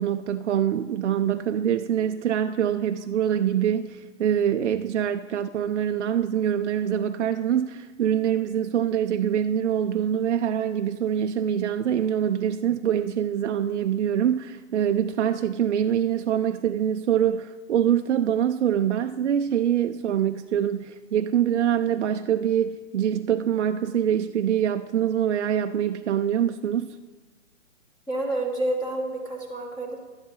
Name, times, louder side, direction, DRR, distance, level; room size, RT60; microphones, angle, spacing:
voice 1, 0.0-27.0, right 9 dB, 70° right, 7 dB, 0.6 m, -24 dB
voice 2, 28.1-30.0, right 1 dB, 10° left, 0 dB, 1.1 m, -29 dB
12.0 x 10.5 x 3.8 m, 1.3 s
hypercardioid pair, 150°, 37 cm